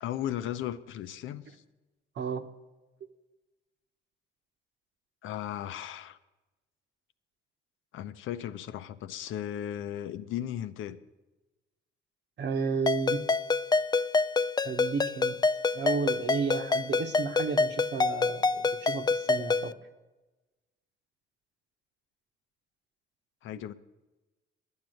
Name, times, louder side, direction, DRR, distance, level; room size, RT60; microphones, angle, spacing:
voice 1, 0.0-1.6 5.2-6.2 7.9-11.0 23.4-23.7, left 11 dB, 80° left, 12 dB, 0.7 m, -36 dB
voice 2, 2.2-2.5 12.4-13.2 14.6-15.4 15.7-19.7, right 5 dB, 60° right, 8 dB, 1.1 m, -32 dB
Ringtone, 12.9-19.7, left 4 dB, 20° left, 0.4 m, -27 dB
10.5 x 9.6 x 7.8 m, 1.1 s
cardioid pair, 90°, 20 cm